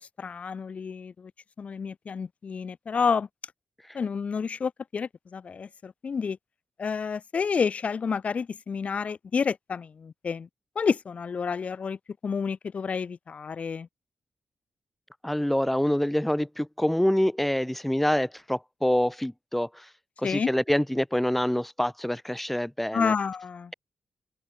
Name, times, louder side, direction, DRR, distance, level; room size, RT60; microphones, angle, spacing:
voice 1, 0.2-1.1 1.6-3.3 3.9-6.4 6.8-10.5 10.7-12.0 12.2-13.9 20.2-20.5 22.9-23.7, left 5 dB, 55° left, 3.2 m, -29 dB
voice 2, 15.2-19.9 20.2-23.1, left 1 dB, 5° left, 1.9 m, -26 dB
open air
cardioid pair, 90°, 3 cm